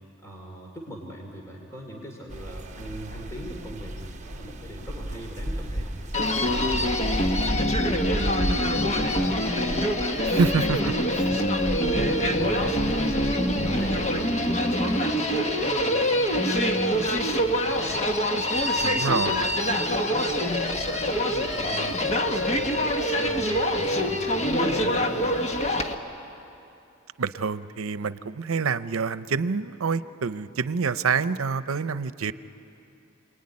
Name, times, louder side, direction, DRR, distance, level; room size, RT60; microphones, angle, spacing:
voice 1, 0.2-10.5 10.8-10.9 11.3-18.0 18.3-20.7 21.1-22.0 22.3-22.9 23.1-25.6, equal, 15° left, -1 dB, 2.7 m, -38 dB
sound 1, 2.3-7.5, right 1 dB, 35° right, 1.0 m, -41 dB
sound 2, 2.5-14.0, equal, 60° left, 1.8 m, -34 dB
Human voice, 6.1-25.9, left 1 dB, 35° left, 1.3 m, -25 dB
voice 2, 10.3-11.4 18.8-19.4 27.2-32.3, right 5 dB, 90° right, 14 dB, 0.7 m, -27 dB
28.5 x 20.5 x 9.7 m, 2.8 s
head